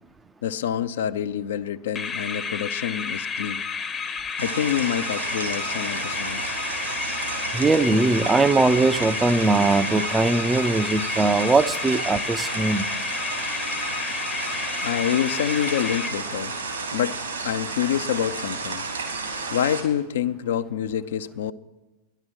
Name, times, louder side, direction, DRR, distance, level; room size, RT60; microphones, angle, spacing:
voice 1, 0.4-3.6 4.4-6.6 14.8-16.6 16.9-17.2 17.4-18.9 19.5-21.5, left 9 dB, 60° left, 0.5 m, -27 dB
sound 1, 2.0-16.6, left 5 dB, 20° left, 0.7 m, -31 dB
sound 2, 4.4-19.8, right 4 dB, 75° right, 3.2 m, -32 dB
voice 2, 7.5-12.8, right 3 dB, 10° right, 0.5 m, -20 dB
12.5 x 11.0 x 6.3 m
figure-of-eight pair, 90°, 0 cm